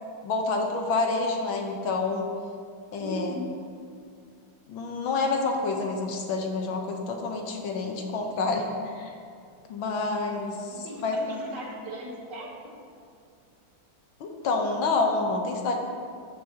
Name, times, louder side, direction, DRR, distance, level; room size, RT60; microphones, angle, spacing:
voice 1, 0.2-2.3 2.9-3.3 4.7-9.1 9.7-11.2 14.2-15.8, left 3 dB, 70° left, 2 dB, 1.7 m, -28 dB
voice 2, 3.0-3.6 10.8-12.7, equal, 55° right, -1 dB, 1.8 m, -38 dB
13.5 x 10.0 x 2.9 m, 2.3 s
omnidirectional pair, 2.3 m